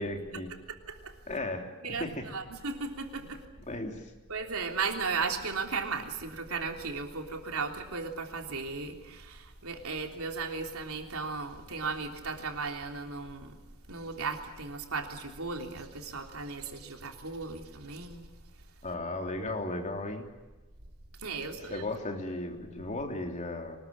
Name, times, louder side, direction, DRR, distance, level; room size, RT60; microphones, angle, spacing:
voice 1, 0.0-0.5 1.3-2.3 3.7-4.1 18.8-20.3 21.6-23.8, left 2 dB, 35° left, 3 dB, 3.2 m, -35 dB
voice 2, 0.7-1.1 1.8-3.4 4.3-13.5 13.9-18.3 21.2-21.8, right 4 dB, 90° right, 3 dB, 3.4 m, -36 dB
25.0 x 20.5 x 8.9 m, 1.2 s
head